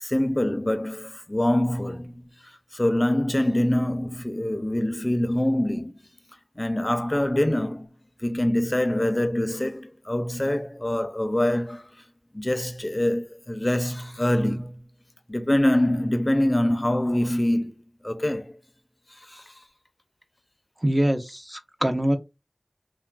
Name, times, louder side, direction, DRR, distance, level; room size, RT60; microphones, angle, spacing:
voice 1, 0.0-2.3 2.7-5.9 6.6-7.9 8.2-11.8 12.3-14.8 15.3-17.7 18.0-18.5 19.3-19.4, left 1 dB, 35° left, 0.4 m, -24 dB
voice 2, 20.8-22.2, right 1 dB, 30° right, 0.5 m, -24 dB
3.1 x 2.3 x 2.3 m
wide cardioid pair, 45°, 0 cm